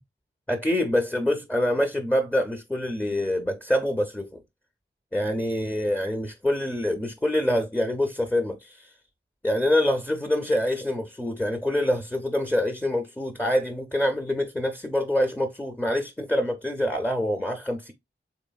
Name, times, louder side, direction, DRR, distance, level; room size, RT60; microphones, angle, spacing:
voice 1, 0.5-4.4 5.1-8.9 9.4-17.9, left 1 dB, 10° left, 0.4 m, -25 dB
4.0 x 3.3 x 2.2 m
wide cardioid pair, 80°, 21 cm